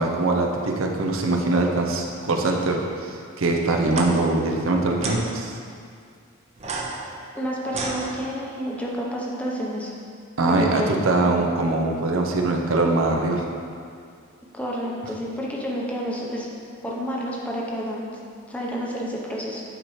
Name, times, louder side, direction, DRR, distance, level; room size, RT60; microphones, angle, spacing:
voice 1, 0.0-5.6 10.4-13.5, right 2 dB, 80° right, 1 dB, 0.7 m, -22 dB
sound 1, 3.8-4.1 5.0-5.2 6.6-8.6, right 3 dB, 35° right, 0.6 m, -32 dB
voice 2, 7.3-9.9 10.5-11.0 14.5-16.5 16.8-18.1 18.5-19.6, equal, 5° left, -4 dB, 0.7 m, -29 dB
9.0 x 4.4 x 3.1 m, 2.3 s
head